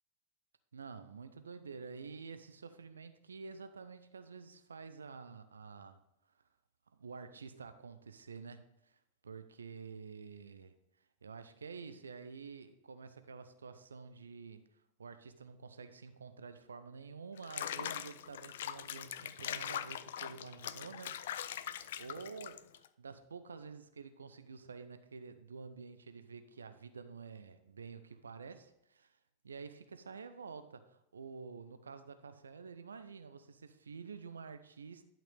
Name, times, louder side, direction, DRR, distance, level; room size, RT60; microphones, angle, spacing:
voice 1, 0.7-6.0 7.0-10.8 11.2-14.6 15.0-21.4 22.0-29.2 29.4-35.0, right 5 dB, 70° right, 10 dB, 0.6 m, -49 dB
Water / Bathtub (filling or washing), 17.4-22.9, left 10 dB, 60° left, 0.4 m, -42 dB
11.0 x 6.0 x 3.4 m, 0.83 s
figure-of-eight pair, 90°, 0 cm